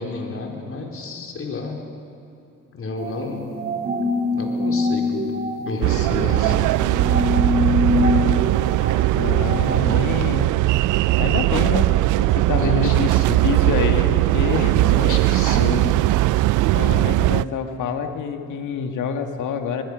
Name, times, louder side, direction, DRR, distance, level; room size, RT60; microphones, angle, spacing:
voice 1, 0.0-1.8 2.7-3.5 4.3-5.3 5.6-6.8 12.6-13.4 14.7-15.9, left 3 dB, 45° left, 2 dB, 4.0 m, -30 dB
sound 1, 3.0-9.8, left 2 dB, 30° right, 3.8 m, -25 dB
sound 2, 5.8-17.4, right 17 dB, 80° right, 0.4 m, -19 dB
voice 2, 9.1-10.5 11.2-11.9 12.2-14.8 16.7-19.8, left 6 dB, 80° left, 6 dB, 1.9 m, -26 dB
24.5 x 20.5 x 6.3 m, 2.8 s
cardioid pair, 90°, 30 cm